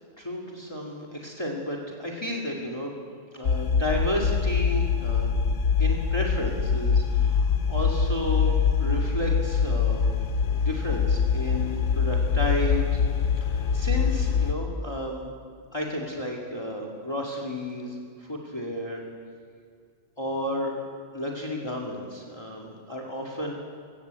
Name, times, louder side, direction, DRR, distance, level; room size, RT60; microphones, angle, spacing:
voice 1, 0.2-2.9 3.3-5.3 5.8-8.5 8.8-10.0 10.5-13.0 13.4-15.3 15.7-19.0 20.2-20.7 21.1-23.5, left 1 dB, 25° left, -1 dB, 2.2 m, -32 dB
sound 1, 3.4-14.5, left 6 dB, 90° left, 1.3 m, -24 dB
20.5 x 16.5 x 8.2 m, 2.2 s
omnidirectional pair, 1.2 m